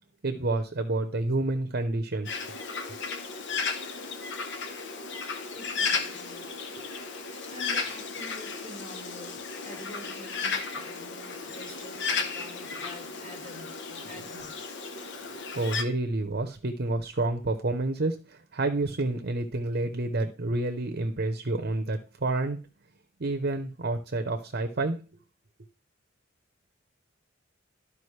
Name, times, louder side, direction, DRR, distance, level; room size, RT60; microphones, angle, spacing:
voice 1, 0.2-2.4 14.2-14.3 15.5-22.6 23.2-25.0, right 2 dB, 55° right, 0.8 m, -29 dB
Bird, 2.2-15.8, left 5 dB, 65° left, 1.0 m, -34 dB
voice 2, 5.5-6.9 7.5-14.6, left 1 dB, 40° left, 4.9 m, -47 dB
12.5 x 5.1 x 3.3 m
head